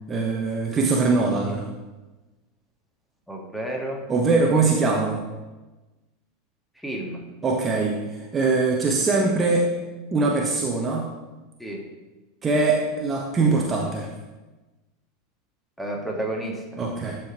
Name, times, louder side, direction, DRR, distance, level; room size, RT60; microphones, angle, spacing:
voice 1, 0.1-1.7 4.1-5.3 7.4-8.0 8.3-9.8 10.1-11.1 12.4-14.1 16.8-17.2, right 3 dB, 25° right, 0 dB, 1.2 m, -22 dB
voice 2, 3.3-4.0 6.8-7.2 11.6-11.8 15.8-16.6, right 1 dB, ahead, 0 dB, 1.9 m, -30 dB
12.0 x 5.0 x 4.7 m, 1.1 s
figure-of-eight pair, 80°, 0 cm